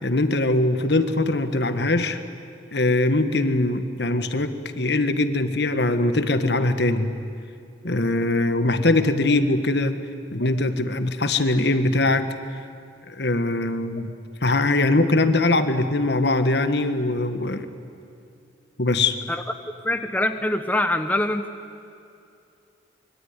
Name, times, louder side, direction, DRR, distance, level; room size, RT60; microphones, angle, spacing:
voice 1, 0.0-2.2 2.7-7.1 7.8-10.0 10.3-12.3 13.1-14.1 14.4-17.7 18.8-19.2, left 2 dB, 60° left, 10 dB, 1.5 m, -22 dB
voice 2, 19.8-21.4, left 1 dB, 10° left, 7 dB, 0.9 m, -23 dB
25.5 x 23.5 x 9.7 m, 2.5 s
head